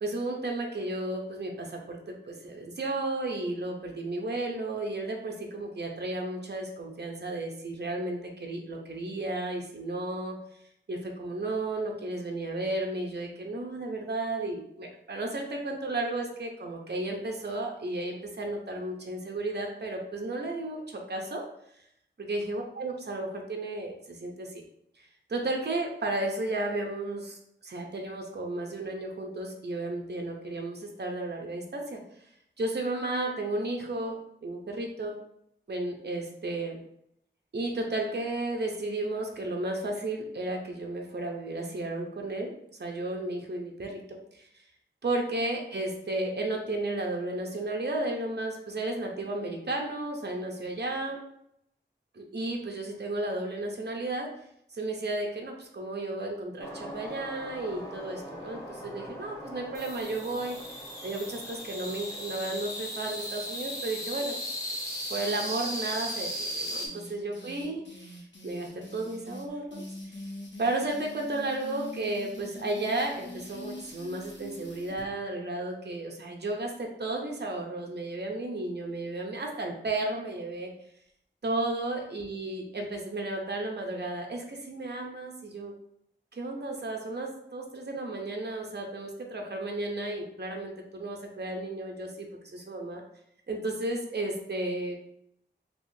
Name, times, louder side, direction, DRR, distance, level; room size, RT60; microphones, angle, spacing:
voice 1, 0.0-10.4 10.9-21.4 22.2-24.6 25.3-32.0 32.6-35.2 35.7-36.8 37.5-42.5 42.8-44.5 45.0-51.2 52.1-54.3 54.7-60.6 61.0-64.5 65.1-70.2 70.6-80.7 81.4-85.7 86.3-93.0 93.5-94.9, right 2 dB, 60° right, 1 dB, 0.6 m, -33 dB
sound 1, 56.6-66.9, equal, 15° left, 0.9 m, -37 dB
sound 2, 66.7-75.1, left 1 dB, 70° left, 0.7 m, -44 dB
3.5 x 2.9 x 2.6 m, 0.73 s
wide cardioid pair, 55°, 20 cm